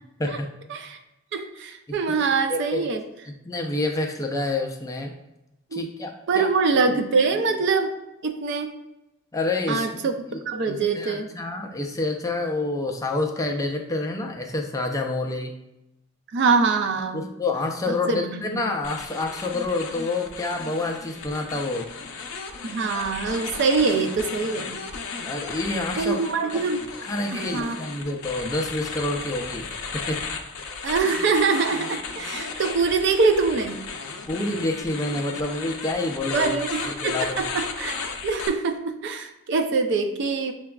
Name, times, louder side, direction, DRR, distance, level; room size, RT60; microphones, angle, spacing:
voice 1, 1.3-3.0 5.7-5.8 6.3-8.0 8.2-8.7 9.7-11.3 16.3-17.3 17.9-18.6 22.6-24.8 26.0-26.9 27.3-27.8 30.8-33.8 36.3-37.9 38.2-40.5, right 4 dB, 60° right, 7 dB, 0.4 m, -24 dB
voice 2, 1.9-2.9 3.3-5.1 5.7-6.5 9.3-15.5 17.1-21.9 25.2-26.2 26.5-26.6 27.0-30.2 34.3-36.6 36.9-37.5, left 2 dB, 15° left, 2 dB, 0.4 m, -28 dB
sound 1, 18.8-38.5, left 5 dB, 80° left, 0.5 m, -35 dB
6.6 x 2.3 x 2.2 m, 0.92 s
head